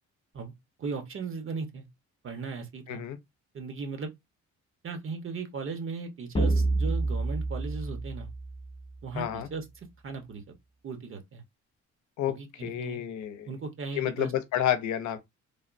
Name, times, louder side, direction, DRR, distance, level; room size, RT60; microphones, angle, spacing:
voice 1, 0.8-1.8 2.2-3.0 3.5-4.1 4.8-8.3 9.0-9.6 10.0-10.5 10.8-11.4 12.3-13.0 13.5-14.3, right 4 dB, 45° right, 0.9 m, -37 dB
sound 1, 6.4-9.0, right 2 dB, 20° left, 0.5 m, -28 dB
voice 2, 9.1-9.5 12.2-13.5 14.0-15.2, left 11 dB, 70° left, 0.7 m, -30 dB
3.4 x 2.1 x 2.5 m
cardioid pair, 90°, 30 cm